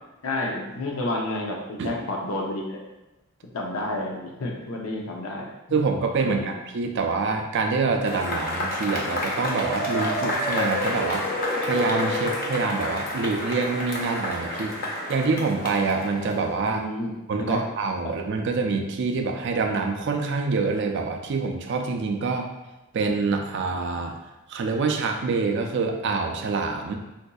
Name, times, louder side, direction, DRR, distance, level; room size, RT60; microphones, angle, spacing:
voice 1, 0.2-2.8 3.5-5.8 6.2-6.5 16.6-17.1 17.4-17.6 18.0-18.1, left 1 dB, 85° left, -1 dB, 0.7 m, -30 dB
voice 2, 5.7-11.3 11.6-14.8 15.1-16.8 17.3-22.5 22.9-24.1 24.5-27.0, right 4 dB, 55° right, 4 dB, 0.4 m, -26 dB
Cheering / Applause / Crowd, 8.0-16.7, left 1 dB, 45° left, 0.5 m, -29 dB
3.9 x 2.6 x 2.3 m, 1.0 s
head